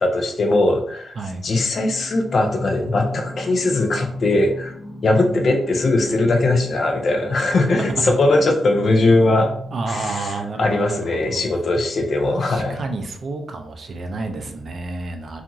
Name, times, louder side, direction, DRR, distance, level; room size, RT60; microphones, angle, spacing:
voice 1, 0.0-1.1 1.4-4.7 5.0-9.5 9.9-10.3 10.6-12.8, left 2 dB, 45° left, 3 dB, 0.4 m, -19 dB
Singing, 1.7-10.6, left 1 dB, 10° left, 1.0 m, -35 dB
voice 2, 9.7-11.4 12.2-15.4, right 3 dB, 45° right, 5 dB, 0.4 m, -30 dB
2.8 x 2.4 x 2.5 m, 0.66 s
wide cardioid pair, 150°, 0 cm